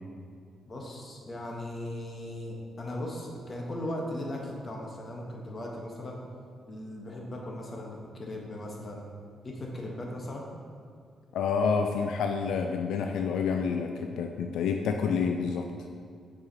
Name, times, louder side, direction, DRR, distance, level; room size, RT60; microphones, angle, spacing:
voice 1, 0.7-6.2 6.7-9.0 9.4-10.5, left 1 dB, 35° left, -1 dB, 1.1 m, -38 dB
voice 2, 11.3-15.6, left 5 dB, 85° left, 4 dB, 0.3 m, -28 dB
7.4 x 4.7 x 2.8 m, 2.2 s
cardioid pair, 110°, 0 cm